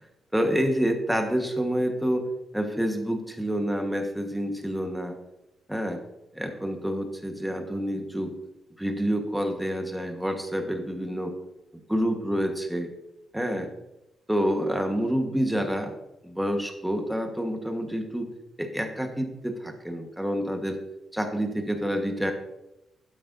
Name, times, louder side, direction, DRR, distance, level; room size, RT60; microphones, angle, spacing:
voice 1, 0.3-2.3 2.5-5.1 5.7-6.0 6.3-8.3 8.8-11.3 11.9-12.9 13.3-13.7 14.3-15.9 16.2-18.3 18.6-20.8 21.1-22.3, equal, 5° right, 4 dB, 1.3 m, -28 dB
12.0 x 8.6 x 2.6 m, 0.93 s
cardioid pair, 110°, 0 cm